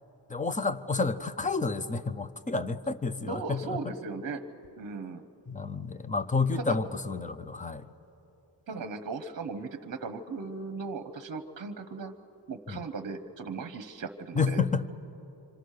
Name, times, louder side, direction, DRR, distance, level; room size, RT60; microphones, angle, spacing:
voice 1, 0.3-3.9 5.5-7.9 12.7-12.8 14.4-14.9, left 4 dB, 15° left, 11 dB, 0.6 m, -30 dB
voice 2, 3.3-4.4 4.8-5.2 6.6-6.8 8.7-12.1 12.5-14.6, right 4 dB, 45° right, 9 dB, 0.9 m, -37 dB
26.5 x 26.5 x 6.6 m, 2.9 s
wide cardioid pair, 175°, 45 cm